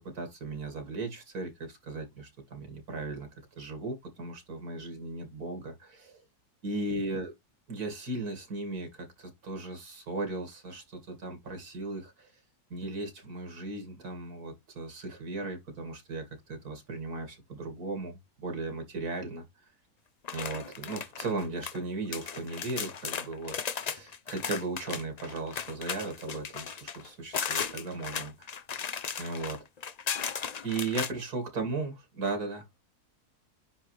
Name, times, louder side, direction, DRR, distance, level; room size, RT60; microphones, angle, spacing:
voice 1, 0.1-3.3 3.6-6.2 6.6-7.3 7.7-12.3 12.7-19.4 20.3-28.5 29.2-29.6 30.6-32.6, right 3 dB, 75° right, 2.8 m, -37 dB
sound 1, 20.2-21.8 22.1-31.1, left 6 dB, 65° left, 0.4 m, -36 dB
9.9 x 3.3 x 3.3 m
omnidirectional pair, 1.6 m